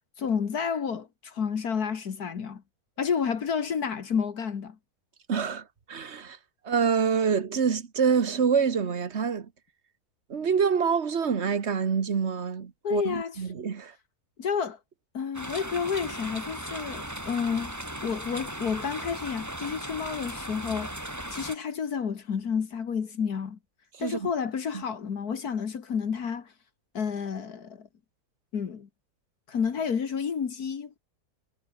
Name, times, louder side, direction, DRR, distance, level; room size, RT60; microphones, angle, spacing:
voice 1, 0.2-2.6 3.0-4.8 12.8-13.4 14.4-14.8 15.1-17.7 18.0-20.9 21.3-23.6 24.0-26.5 26.9-27.9 28.5-28.9 29.5-31.0, left 6 dB, 75° left, 2.1 m, -30 dB
voice 2, 5.3-6.4 6.6-9.5 10.3-13.9 24.0-24.3 24.7-24.8, right 6 dB, 45° right, 1.6 m, -26 dB
sound 1, 15.3-21.6, equal, 10° right, 5.0 m, -37 dB
omnidirectional pair, 1.7 m